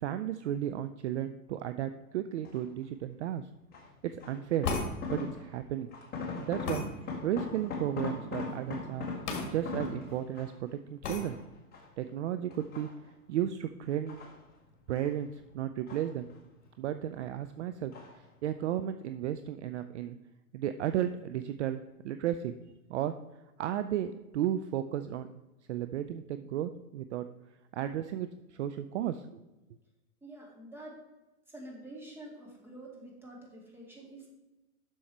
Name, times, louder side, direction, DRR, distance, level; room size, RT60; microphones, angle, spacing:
voice 1, 0.0-3.5 4.0-4.8 5.1-5.9 6.4-6.8 7.2-9.1 9.4-11.4 12.0-12.9 13.3-14.2 14.9-16.2 16.8-17.9 18.4-20.2 20.5-22.5 22.9-23.1 23.6-25.3 25.7-27.3 27.7-29.4, right 11 dB, 50° right, 10 dB, 0.5 m, -34 dB
sound 1, 2.4-2.8 3.7-5.6 5.9-10.7 11.2-12.1 12.5-13.3 13.8-15.2 15.4-16.6 16.9-17.5 17.9-18.3 18.6-18.7, left 4 dB, 20° left, 1.8 m, -40 dB
sound 2, 4.6-4.9 6.7-6.9 9.3-9.5 9.8-9.9 11.0-11.2, left 4 dB, 50° left, 2.0 m, -33 dB
voice 2, 30.2-31.0 31.5-34.3, right 1 dB, 5° right, -3 dB, 2.2 m, -47 dB
7.3 x 6.3 x 4.5 m, 1.1 s
hypercardioid pair, 120°, 45 cm